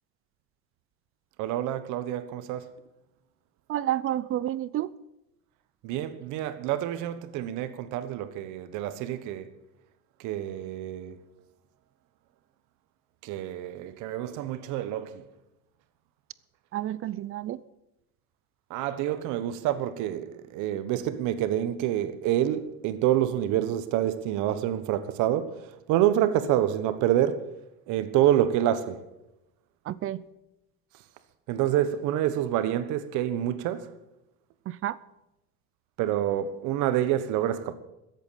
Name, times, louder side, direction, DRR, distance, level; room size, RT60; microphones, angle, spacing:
voice 1, 1.4-2.7 5.8-9.5 10.2-11.2 13.2-15.2 18.7-25.6 25.9-27.5 27.9-29.0 31.5-33.9 36.0-37.7, right 12 dB, 80° right, 1.3 m, -27 dB
voice 2, 3.7-4.9 16.7-17.6 29.9-30.2 34.7-35.0, right 13 dB, 45° right, 0.6 m, -30 dB
13.5 x 8.3 x 8.5 m
cardioid pair, 125°, 30 cm